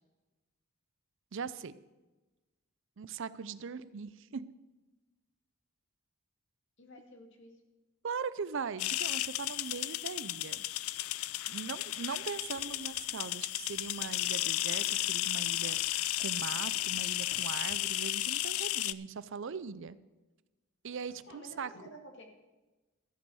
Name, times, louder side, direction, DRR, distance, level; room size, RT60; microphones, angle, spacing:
voice 1, 1.3-1.7 3.0-4.5 8.0-10.6 11.5-20.0 20.8-21.7, right 5 dB, 60° right, 16 dB, 0.5 m, -40 dB
voice 2, 6.8-7.6 21.1-22.3, equal, 55° left, 3 dB, 2.2 m, -51 dB
sound 1, 8.8-18.9, left 16 dB, 75° left, 0.4 m, -34 dB
sound 2, 11.9-18.0, right 3 dB, 85° right, 2.6 m, -60 dB
13.5 x 8.2 x 6.2 m, 1.1 s
head